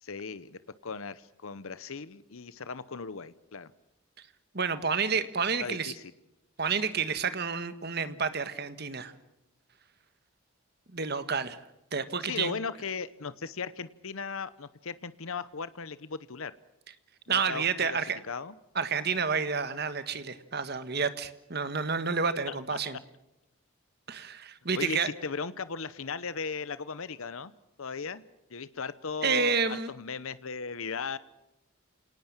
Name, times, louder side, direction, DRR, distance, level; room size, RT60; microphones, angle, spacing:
voice 1, 0.0-3.7 5.6-6.0 12.2-16.5 17.3-18.0 18.2-18.5 22.5-22.8 24.7-27.5 27.8-28.2 28.5-31.2, left 5 dB, 70° left, 16 dB, 0.8 m, -37 dB
voice 2, 4.5-5.9 6.6-9.1 10.9-11.6 11.9-12.5 17.3-18.2 18.7-23.0 24.1-25.1 29.2-29.9, right 5 dB, 45° right, 12 dB, 1.4 m, -30 dB
28.0 x 18.5 x 7.4 m, 0.90 s
head